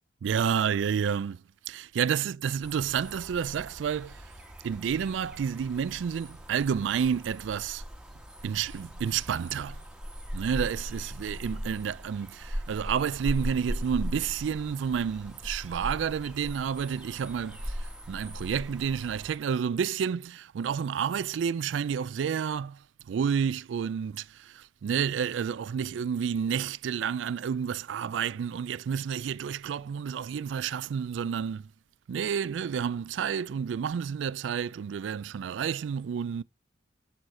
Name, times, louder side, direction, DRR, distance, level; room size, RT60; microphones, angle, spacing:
voice 1, 0.2-1.4 1.7-4.2 4.6-7.8 8.4-9.8 10.3-22.8 23.1-31.7 32.1-36.4, right 7 dB, 75° right, 0.3 m, -30 dB
sound 1, 2.6-19.4, equal, 5° right, 1.2 m, -39 dB
8.4 x 6.4 x 4.3 m
head